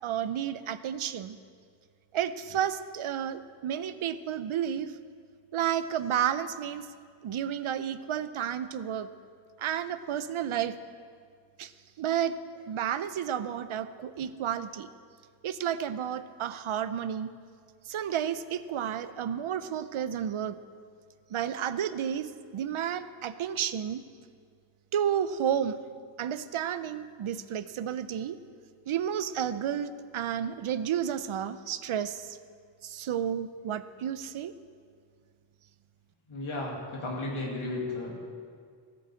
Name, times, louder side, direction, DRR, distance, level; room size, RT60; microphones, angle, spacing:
voice 1, 0.0-1.4 2.1-4.9 5.5-6.9 7.2-9.1 9.6-10.8 11.6-11.7 12.0-14.9 15.4-17.3 17.9-20.6 21.3-24.0 24.9-25.8 26.2-28.4 28.9-32.4 32.8-34.5, right 9 dB, 85° right, 13 dB, 0.7 m, -31 dB
voice 2, 36.3-38.1, left 2 dB, 90° left, -3 dB, 2.4 m, -34 dB
14.5 x 7.8 x 7.5 m, 2.1 s
wide cardioid pair, 75°, 48 cm